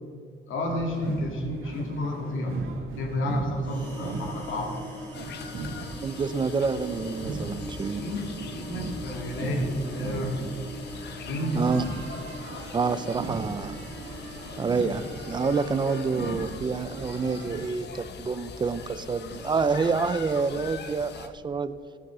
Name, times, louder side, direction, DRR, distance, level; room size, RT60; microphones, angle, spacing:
voice 1, 0.5-2.6 3.0-5.0 7.9-10.6 11.2-11.7, left 1 dB, 75° left, 2 dB, 2.1 m, -31 dB
sound 1, 0.7-17.7, right 3 dB, 80° right, 1.9 m, -39 dB
sound 2, 3.6-17.5, right 1 dB, 10° left, 3.7 m, -44 dB
sound 3, 5.1-21.3, left 6 dB, 55° left, 0.9 m, -42 dB
voice 2, 6.0-8.0 11.5-11.8 12.7-13.8 14.6-21.7, right 4 dB, 20° right, 13 dB, 0.4 m, -28 dB
16.0 x 7.5 x 6.1 m, 2.3 s
wide cardioid pair, 175°, 21 cm